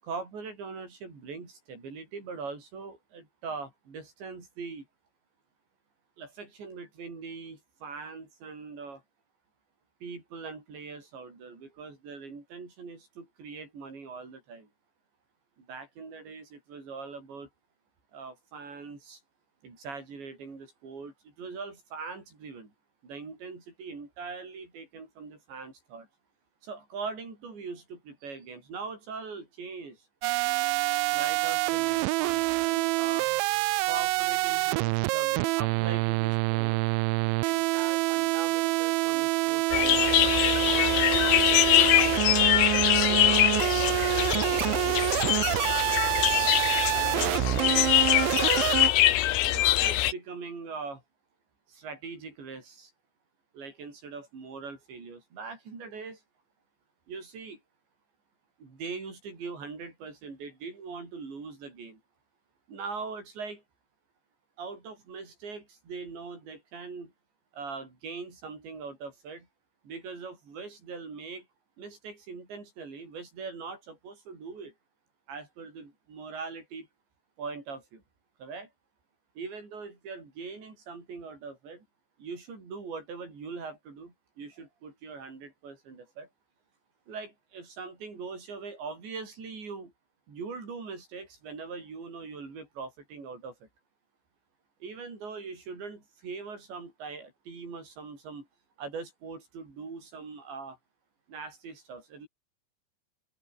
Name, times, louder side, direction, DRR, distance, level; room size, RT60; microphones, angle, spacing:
voice 1, 0.0-4.9 6.2-9.0 10.0-14.7 15.6-17.5 18.1-19.2 19.6-22.7 23.0-26.1 26.6-30.0 31.1-33.3 33.8-36.8 37.3-40.3 41.1-42.3 43.1-46.6 46.9-48.4 49.5-51.0 51.7-52.9 53.5-56.2 57.1-57.6 58.6-62.0 62.7-63.6 64.6-67.1 67.5-69.5 69.8-71.5 71.8-74.7 75.3-76.9 77.4-78.0 78.4-78.7 79.4-81.9 82.2-86.3 87.1-89.9 90.3-93.7 94.8-98.5 98.8-100.8 101.3-102.3, right 4 dB, 70° right, 10.5 m, -41 dB
sound 1, 30.2-48.9, right 24 dB, 85° right, 2.9 m, -27 dB
sound 2, 39.7-50.1, left 14 dB, 75° left, 3.6 m, -24 dB
open air
omnidirectional pair, 5.4 m